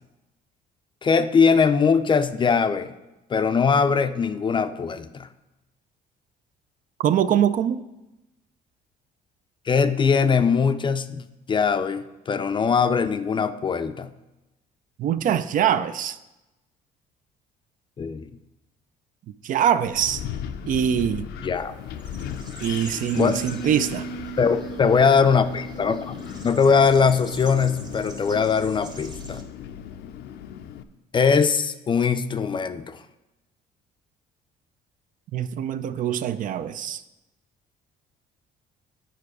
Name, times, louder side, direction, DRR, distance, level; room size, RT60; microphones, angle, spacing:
voice 1, 1.0-2.9 3.3-5.3 9.7-14.1 18.0-18.3 21.4-21.7 23.1-23.4 24.4-26.2 26.4-29.4 31.1-33.0, left 5 dB, 30° left, 11 dB, 0.4 m, -21 dB
voice 2, 7.0-7.8 15.0-16.2 19.4-20.2 20.7-21.3 22.6-24.1 35.3-37.0, right 9 dB, 50° right, 13 dB, 0.4 m, -23 dB
Wind, 19.8-30.8, left 9 dB, 75° left, 0.5 m, -37 dB
sound 1, 21.5-29.4, right 3 dB, 25° right, 1.1 m, -46 dB
Bass guitar, 23.1-29.3, right 7 dB, 75° right, 0.9 m, -40 dB
9.0 x 4.7 x 4.8 m, 0.99 s
cardioid pair, 110°, 17 cm